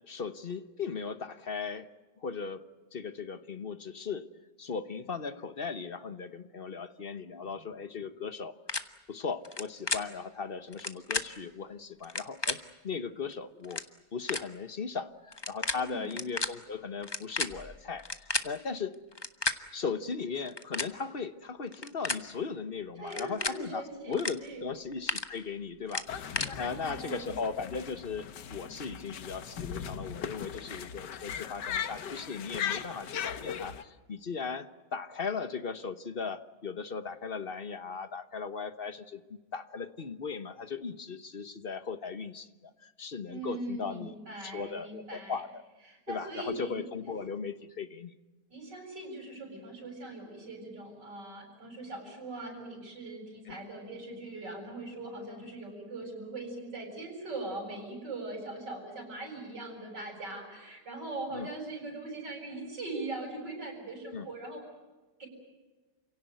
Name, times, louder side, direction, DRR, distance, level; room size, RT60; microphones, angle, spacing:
voice 1, 0.0-1.9 2.2-2.6 2.9-4.3 4.6-8.5 9.1-13.8 14.1-19.0 19.7-42.5 42.8-44.1 44.4-45.6 46.1-48.1 53.5-53.6 61.3-61.5 64.1-64.3, left 5 dB, 35° left, 11 dB, 1.2 m, -37 dB
sound 1, 8.7-8.8 9.4-9.6 9.9-10.0 10.7-11.2 12.0-12.5 13.3-13.4 13.6-13.9 14.3-14.4 15.3-15.7 16.0-16.5 17.0-18.5 19.1-19.5 20.4-20.9 21.7-22.2 23.1-23.5 24.1-24.3 24.7-25.2 25.9-26.5, left 3 dB, 20° left, 0.9 m, -32 dB
voice 2, 15.7-16.1 23.0-24.7 26.6-27.3 43.2-45.4 45.9-46.9 48.5-64.6 65.2-65.3, right 2 dB, 85° right, 2 dB, 8.6 m, -41 dB
sound 2, 26.1-33.8, left 8 dB, 90° left, 1.7 m, -38 dB
29.5 x 17.0 x 9.3 m, 1.2 s
omnidirectional pair, 1.8 m